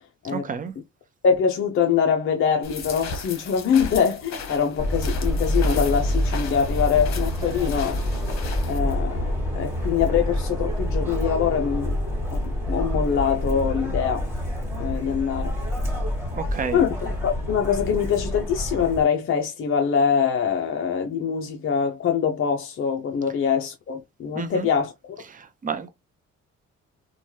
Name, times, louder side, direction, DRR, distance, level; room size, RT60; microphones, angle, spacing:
voice 1, 0.2-0.7 16.3-16.8 24.3-24.7 25.2-25.9, right 6 dB, 25° right, 0.6 m, -31 dB
voice 2, 1.2-8.0 8.7-12.0 12.3-12.4 12.7-14.2 14.8-15.5 16.7-16.9 17.2-24.9, left 7 dB, 45° left, 0.5 m, -23 dB
sound 1, 2.6-8.8, left 4 dB, 60° left, 1.0 m, -36 dB
Subway metro underground, 4.8-19.0, left 1 dB, 10° right, 1.6 m, -27 dB
3.0 x 2.3 x 2.7 m
cardioid pair, 90°, 30 cm